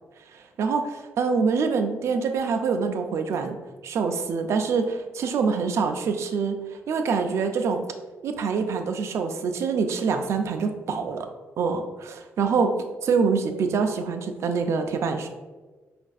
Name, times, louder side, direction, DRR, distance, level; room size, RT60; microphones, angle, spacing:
voice 1, 0.3-3.6 3.8-7.8 8.2-11.3 11.6-12.7 13.0-15.3, right 5 dB, 65° right, 6 dB, 0.4 m, -25 dB
5.1 x 2.4 x 2.3 m, 1.3 s
wide cardioid pair, 155°, 5 cm